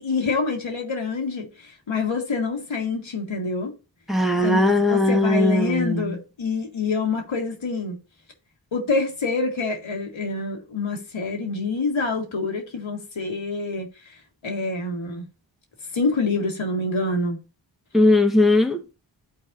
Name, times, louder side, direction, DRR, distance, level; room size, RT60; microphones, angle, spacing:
voice 1, 0.0-3.7 4.4-8.0 8.7-13.9 14.4-15.3 15.9-17.4, left 3 dB, 80° left, 1.6 m, -26 dB
voice 2, 4.1-6.2 17.9-18.8, left 1 dB, ahead, 1.2 m, -19 dB
12.0 x 4.1 x 2.5 m
cardioid pair, 45°, 47 cm